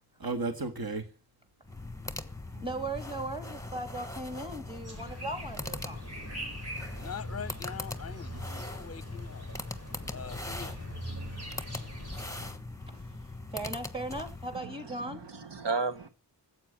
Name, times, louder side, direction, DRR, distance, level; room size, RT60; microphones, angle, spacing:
voice 1, 0.2-1.1 2.5-2.7 5.9-7.0 8.3-8.6 10.4-10.5 11.1-13.4, right 3 dB, 60° right, 1.8 m, -40 dB
sound 1, 1.6-14.6, left 2 dB, 10° left, 1.3 m, -41 dB
voice 2, 2.6-6.0 9.9-10.3 12.9-13.0 13.5-15.2, right 2 dB, 15° right, 3.1 m, -38 dB
sound 2, 4.8-12.5, equal, 40° right, 5.0 m, -42 dB
voice 3, 6.9-9.5 10.1-10.9, left 6 dB, 35° left, 0.6 m, -43 dB
voice 4, 14.6-16.1, right 4 dB, 85° right, 1.3 m, -34 dB
14.0 x 8.2 x 9.7 m
wide cardioid pair, 70°, 41 cm